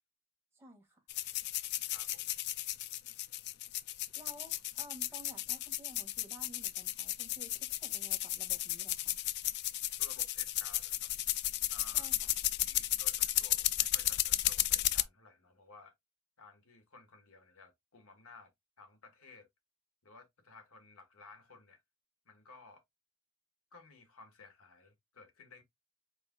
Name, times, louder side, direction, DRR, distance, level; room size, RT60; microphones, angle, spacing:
voice 1, 0.5-1.0 4.1-9.2 11.9-12.3, right 1 dB, 10° right, 1.6 m, -54 dB
sound 1, 1.1-15.0, left 15 dB, 50° left, 0.3 m, -34 dB
voice 2, 1.9-2.3 10.0-11.1 11.7-12.1 12.6-15.9 16.4-18.5 18.8-19.5 20.0-21.8 22.2-22.8 23.7-25.6, left 3 dB, 75° left, 1.4 m, -57 dB
4.7 x 4.2 x 2.2 m
head